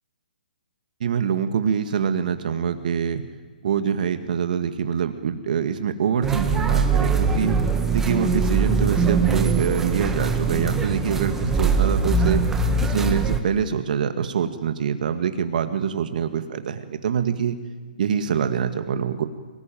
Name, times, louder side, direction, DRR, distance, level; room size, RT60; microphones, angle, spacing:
voice 1, 1.0-3.3 3.6-7.6 7.9-12.4 12.8-17.6 18.0-19.2, right 7 dB, 55° right, 8 dB, 2.0 m, -25 dB
sound 1, 6.2-13.4, right 4 dB, 5° right, 1.5 m, -22 dB
23.0 x 19.5 x 9.2 m, 1.5 s
hypercardioid pair, 150°, 5 cm